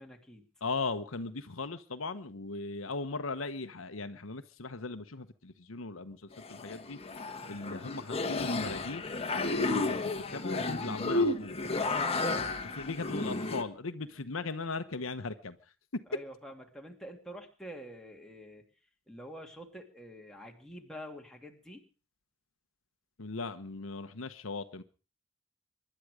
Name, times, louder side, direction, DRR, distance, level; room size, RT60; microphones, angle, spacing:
voice 1, 0.0-0.5 7.3-7.5 11.8-12.6 16.1-18.6 19.1-21.8, equal, 5° left, 2.7 m, -47 dB
voice 2, 0.6-7.0 7.5-11.6 12.8-15.6 23.2-24.8, left 3 dB, 70° left, 1.1 m, -38 dB
sound 1, 6.3-13.6, left 2 dB, 30° left, 1.5 m, -32 dB
24.0 x 11.5 x 5.0 m
head